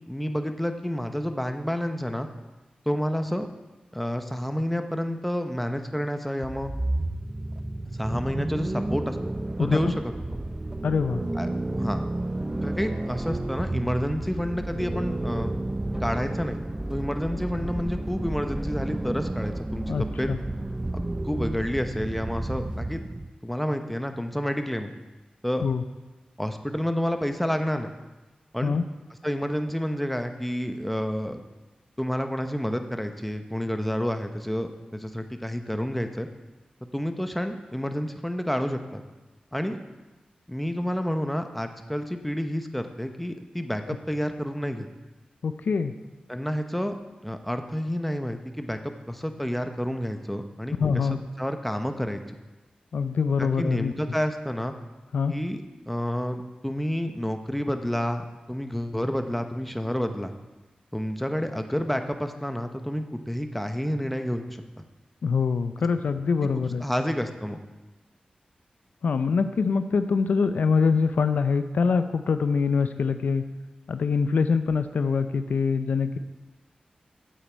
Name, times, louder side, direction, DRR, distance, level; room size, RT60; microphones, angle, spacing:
voice 1, 0.1-2.3 2.9-3.5 3.9-6.7 7.9-9.2 9.6-10.1 11.4-11.5 11.7-12.0 12.6-15.5 16.0-16.6 16.9-20.3 20.9-23.0 23.4-24.9 25.4-25.7 26.4-27.9 28.5-28.8 29.2-31.4 32.0-36.3 36.9-39.0 39.5-39.8 40.5-44.9 46.3-47.0 47.2-51.1 51.4-52.4 53.4-54.7 55.3-60.3 60.9-64.8 66.8-67.6, equal, 5° left, 7 dB, 0.8 m, -29 dB
sound 1, 6.4-23.3, right 1 dB, 20° right, 0.4 m, -31 dB
voice 2, 9.6-9.9 10.8-11.2 19.9-20.4 25.6-25.8 28.6-28.8 43.9-44.0 45.4-45.9 50.8-51.2 52.9-53.9 55.1-55.3 65.2-66.8 69.0-73.5 73.9-76.2, left 5 dB, 85° left, 10 dB, 0.5 m, -24 dB
9.3 x 8.0 x 4.5 m, 1.1 s
wide cardioid pair, 70°, 3 cm